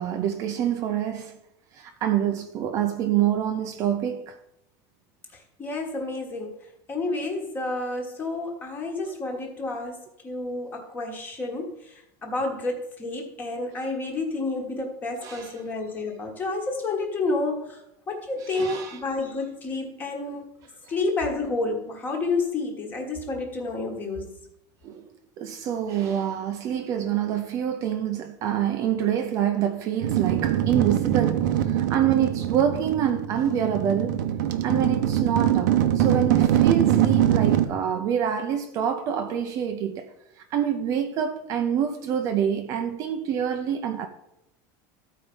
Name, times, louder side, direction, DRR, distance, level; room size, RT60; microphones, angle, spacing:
voice 1, 0.0-1.3 1.8-4.4 15.2-15.5 18.5-19.0 24.8-25.0 25.4-34.2 34.6-40.1 40.5-44.1, right 9 dB, 30° right, 0.5 m, -26 dB
voice 2, 5.6-6.6 6.9-17.8 18.1-20.5 20.9-24.3, left 3 dB, 20° left, 1.4 m, -30 dB
sound 1, 30.0-37.7, right 11 dB, 90° right, 0.8 m, -23 dB
13.5 x 4.6 x 5.3 m
cardioid pair, 180°, 10 cm